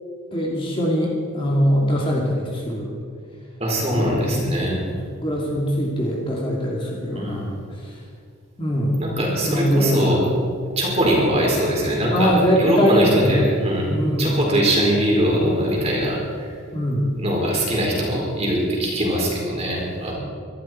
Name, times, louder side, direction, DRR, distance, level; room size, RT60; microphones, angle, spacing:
voice 1, 0.3-2.9 4.0-4.8 5.2-7.5 7.8-8.0 8.6-10.3 12.1-13.4 13.9-14.4 16.7-17.2, equal, 25° left, -3 dB, 2.5 m, -22 dB
voice 2, 3.6-4.8 7.1-7.5 9.0-10.3 10.7-12.3 12.6-13.9 14.2-16.5 17.2-20.1, equal, 30° right, -2 dB, 4.3 m, -21 dB
24.0 x 12.5 x 4.5 m, 2.3 s
head